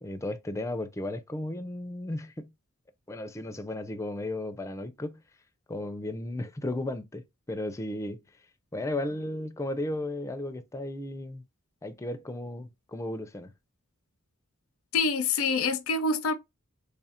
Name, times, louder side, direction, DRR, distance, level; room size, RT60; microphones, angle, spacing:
voice 1, 0.0-2.5 3.1-5.2 5.7-8.2 8.7-11.4 11.8-13.5, left 1 dB, 15° left, 0.4 m, -34 dB
voice 2, 14.9-16.3, left 4 dB, 85° left, 0.6 m, -26 dB
3.4 x 2.4 x 4.2 m
head